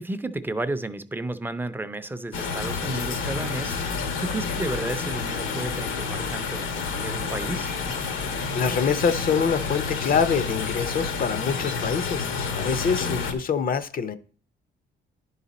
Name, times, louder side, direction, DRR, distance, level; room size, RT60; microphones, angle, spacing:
voice 1, 0.0-3.8 4.2-7.7, right 2 dB, 10° right, 0.5 m, -32 dB
sound 1, 2.3-13.3, left 5 dB, 80° left, 1.1 m, -29 dB
voice 2, 8.3-14.2, left 6 dB, 45° left, 0.6 m, -25 dB
10.5 x 4.1 x 4.1 m
cardioid pair, 90°, 20 cm